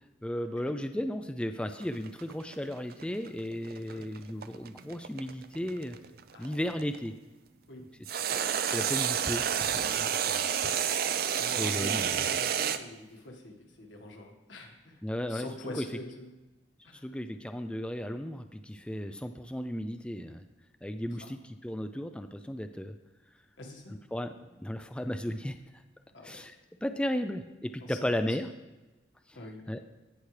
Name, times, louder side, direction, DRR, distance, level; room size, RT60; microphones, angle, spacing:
voice 1, 0.2-6.0 6.4-7.1 8.3-9.5 9.7-10.8 11.6-12.2 15.0-15.5 15.7-15.9 17.0-20.4 20.8-22.9 24.1-25.8 26.2-26.5 26.8-28.5 29.7-29.8, equal, 5° left, 8 dB, 0.3 m, -35 dB
sound 1, 1.8-7.0 8.0-12.8, right 8 dB, 55° right, 0.5 m, -30 dB
voice 2, 6.3-6.7 7.7-7.8 11.3-16.3 16.8-17.1 21.1-21.3 23.6-24.0 26.1-26.5 27.8-28.4 29.3-29.6, left 1 dB, 90° left, 2 dB, 1.7 m, -45 dB
sound 2, 9.6-12.4, right 2 dB, 40° right, 1.3 m, -48 dB
16.5 x 5.9 x 3.3 m, 1.1 s
head